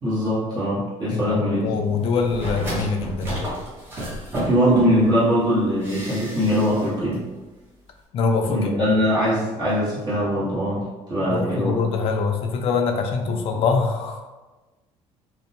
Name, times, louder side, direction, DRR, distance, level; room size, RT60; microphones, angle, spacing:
voice 1, 0.0-2.0 4.3-7.2 8.5-11.8, equal, 35° right, -9 dB, 1.1 m, -22 dB
voice 2, 1.1-3.5 8.1-8.9 11.3-14.3, left 4 dB, 50° left, 4 dB, 0.4 m, -24 dB
sound 1, 2.1-5.2 5.8-6.9 7.1-7.2, right 1 dB, 20° right, 0.8 m, -31 dB
2.5 x 2.1 x 2.7 m, 1.2 s
cardioid pair, 145°, 12 cm